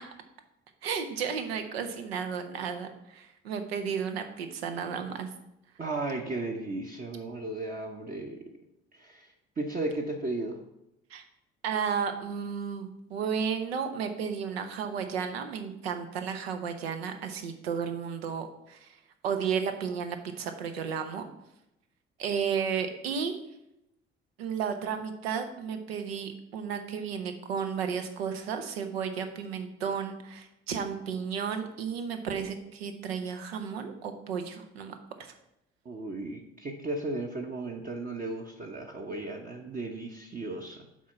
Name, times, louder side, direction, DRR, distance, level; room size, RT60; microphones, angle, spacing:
voice 1, 0.8-5.3 11.1-11.2 11.6-18.9 19.2-21.2 22.2-23.4 24.4-35.3, right 7 dB, 75° right, 7 dB, 0.8 m, -33 dB
voice 2, 5.8-8.4 8.9-10.6 35.8-40.8, right 2 dB, 30° right, 1 dB, 0.9 m, -35 dB
7.4 x 4.3 x 5.7 m, 0.85 s
figure-of-eight pair, 50°, 31 cm